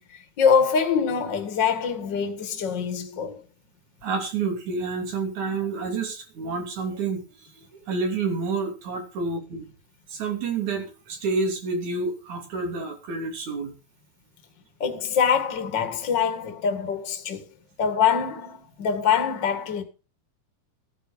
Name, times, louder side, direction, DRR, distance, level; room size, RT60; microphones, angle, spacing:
voice 1, 0.4-3.4 14.8-17.4 17.8-19.8, left 7 dB, 40° left, 2.4 m, -24 dB
voice 2, 4.0-7.2 7.5-9.6 10.1-13.7, right 4 dB, 75° right, 4.3 m, -29 dB
14.5 x 10.0 x 5.2 m
omnidirectional pair, 3.4 m